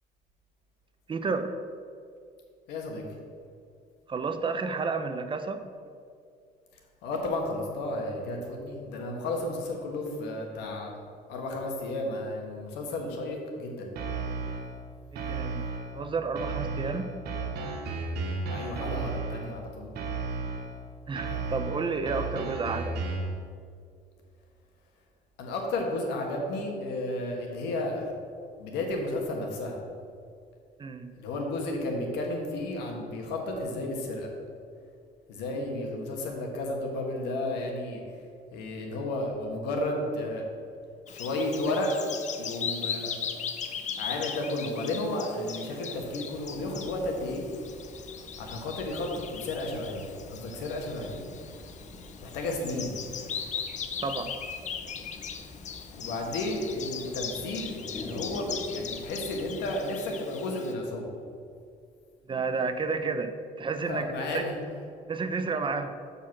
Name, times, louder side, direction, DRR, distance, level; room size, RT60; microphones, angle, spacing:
voice 1, 1.1-1.5 4.1-5.6 15.1-15.7 15.9-17.1 21.1-23.1 30.8-31.1 54.0-54.3 62.3-63.3 63.6-64.4 65.1-65.9, right 4 dB, 30° right, 8 dB, 0.6 m, -31 dB
voice 2, 2.7-3.0 7.0-10.9 11.3-13.9 18.5-19.9 25.4-28.1 28.6-29.8 31.2-34.3 35.3-38.0 38.5-40.4 41.1-41.9 42.4-43.2 44.0-47.4 48.4-51.2 52.2-52.9 56.0-61.1 63.9-64.6, left 2 dB, 90° left, 1 dB, 1.5 m, -33 dB
sound 1, 14.0-14.8 15.2-16.0 16.4-19.6 20.0-20.8 21.2-23.4, right 3 dB, 75° right, 1.2 m, -33 dB
Bird vocalization bird call bird song, 41.1-60.7, left 7 dB, 45° left, 0.7 m, -39 dB
sound 2, 46.3-59.7, left 1 dB, 15° left, 0.8 m, -47 dB
6.6 x 5.6 x 6.0 m, 2.3 s
cardioid pair, 110°, 17 cm